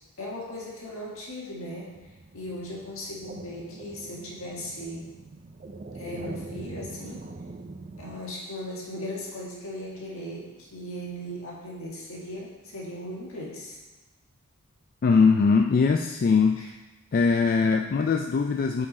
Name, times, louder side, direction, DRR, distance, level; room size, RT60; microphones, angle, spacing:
voice 1, 0.2-1.9 2.3-5.1 5.9-7.3 8.0-13.8 16.6-16.7, left 1 dB, 70° left, -4 dB, 2.0 m, -37 dB
sound 1, 1.9-8.2, right 3 dB, 35° right, 0.4 m, -42 dB
voice 2, 15.0-16.6 17.1-18.9, left 5 dB, 40° left, 4 dB, 0.3 m, -21 dB
8.5 x 4.8 x 4.3 m, 1.2 s
head